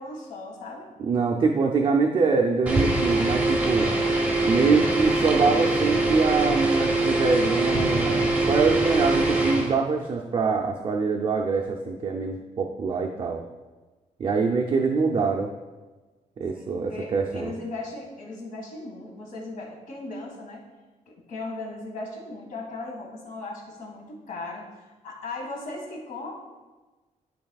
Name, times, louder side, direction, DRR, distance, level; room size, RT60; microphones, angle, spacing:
voice 1, 0.0-0.9 16.5-20.6 21.1-24.6 25.0-26.3, left 2 dB, 75° left, -1 dB, 1.9 m, -37 dB
voice 2, 1.0-3.9 4.4-13.4 14.2-15.5 16.4-17.5, right 4 dB, 40° right, 2 dB, 0.5 m, -24 dB
sound 1, 2.7-9.7, right 2 dB, 10° right, 1.0 m, -23 dB
12.5 x 4.7 x 2.4 m, 1.2 s
wide cardioid pair, 175°, 14 cm